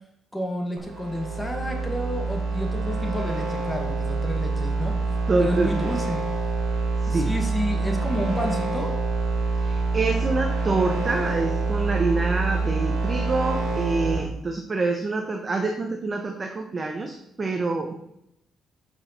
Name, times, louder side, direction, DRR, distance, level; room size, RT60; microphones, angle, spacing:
voice 1, 0.3-4.9 5.4-6.2 7.1-8.9, equal, 10° left, 2 dB, 1.7 m, -30 dB
sound 1, 0.8-14.2, right 3 dB, 65° right, 3.7 m, -26 dB
voice 2, 5.3-5.9 7.0-7.3 9.6-17.9, right 3 dB, 30° right, 4 dB, 1.0 m, -26 dB
8.4 x 6.5 x 4.3 m, 0.78 s
cardioid pair, 90°, 0 cm